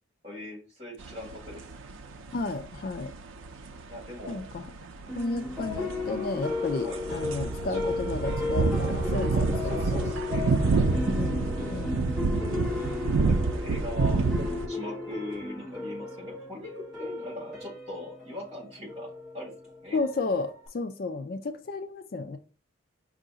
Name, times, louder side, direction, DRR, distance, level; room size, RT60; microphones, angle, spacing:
voice 1, 0.2-1.7 3.9-4.5 6.8-7.0 7.7-8.3 8.8-11.1 13.1-14.3 14.7-19.1 19.3-19.5 19.8-20.0, left 1 dB, 30° right, 2.2 m, -41 dB
sound 1, 1.0-14.7, right 4 dB, 80° right, 0.5 m, -29 dB
voice 2, 2.3-3.1 4.3-4.7 5.1-10.1 11.0-12.2 19.9-22.4, left 3 dB, 45° left, 0.3 m, -33 dB
sound 2, 5.1-20.7, left 3 dB, 5° right, 1.7 m, -35 dB
5.5 x 2.5 x 3.8 m
head